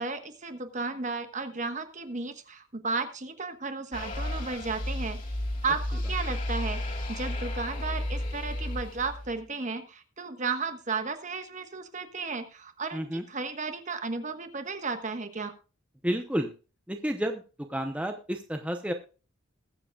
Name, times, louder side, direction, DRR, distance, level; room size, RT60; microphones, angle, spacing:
voice 1, 0.0-5.2 5.6-15.5, right 4 dB, 35° right, 8 dB, 1.3 m, -34 dB
sound 1, 3.9-9.4, left 1 dB, 40° left, 2.2 m, -33 dB
voice 2, 12.9-13.2 16.0-16.5 16.9-17.4 17.7-18.9, equal, 5° right, 5 dB, 0.8 m, -30 dB
21.0 x 7.7 x 2.4 m, 0.34 s
head